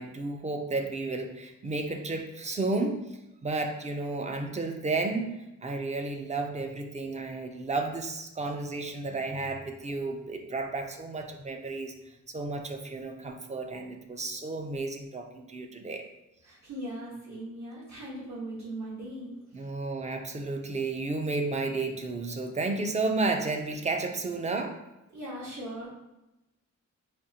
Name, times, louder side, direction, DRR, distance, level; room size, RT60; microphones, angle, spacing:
voice 1, 0.0-3.0 3.4-11.9 12.3-16.1 19.5-24.7, right 3 dB, 25° right, 4 dB, 0.3 m, -32 dB
voice 2, 16.4-19.4 25.1-25.9, right 1 dB, 65° right, -5 dB, 1.2 m, -39 dB
5.0 x 2.4 x 2.7 m, 0.95 s
wide cardioid pair, 145°, 29 cm